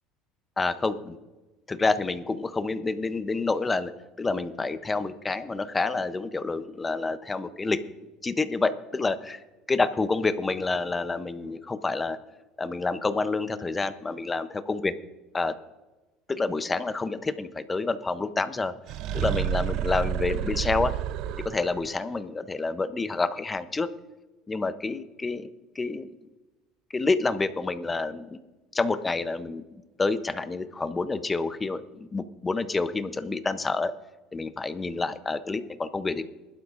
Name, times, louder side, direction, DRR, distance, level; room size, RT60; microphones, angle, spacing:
voice 1, 0.6-1.2 1.7-3.9 4.2-7.8 8.2-9.4 9.7-12.2 12.6-14.9 15.3-15.6 16.3-18.7 19.1-20.9 21.4-23.9 24.5-25.5 25.8-26.1 26.9-28.4 28.7-29.6 30.0-33.9 34.3-36.2, left 3 dB, 10° left, 12 dB, 0.5 m, -28 dB
sound 1, 18.9-21.9, right 10 dB, 45° right, 0.4 m, -29 dB
20.0 x 12.0 x 2.4 m, 1.1 s
cardioid pair, 175°, 0 cm